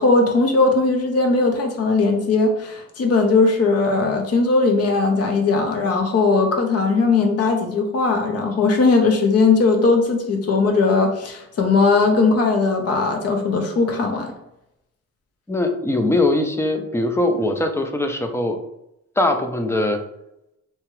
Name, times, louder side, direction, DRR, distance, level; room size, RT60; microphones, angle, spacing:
voice 1, 0.0-14.3, left 3 dB, 55° left, 3 dB, 0.8 m, -18 dB
voice 2, 15.5-18.6 19.2-20.0, left 2 dB, 10° left, 5 dB, 0.4 m, -21 dB
2.8 x 2.3 x 3.1 m, 0.83 s
cardioid pair, 90°, 30 cm